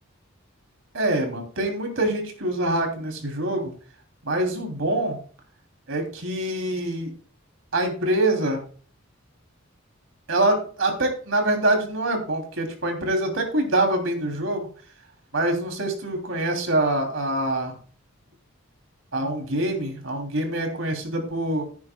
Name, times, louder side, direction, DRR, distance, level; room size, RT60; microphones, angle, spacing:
voice 1, 0.9-3.7 4.2-5.2 5.9-7.1 7.7-8.6 10.3-14.7 15.3-17.7 19.1-21.7, right 1 dB, 70° right, 3 dB, 3.1 m, -25 dB
15.5 x 9.5 x 2.3 m, 0.41 s
head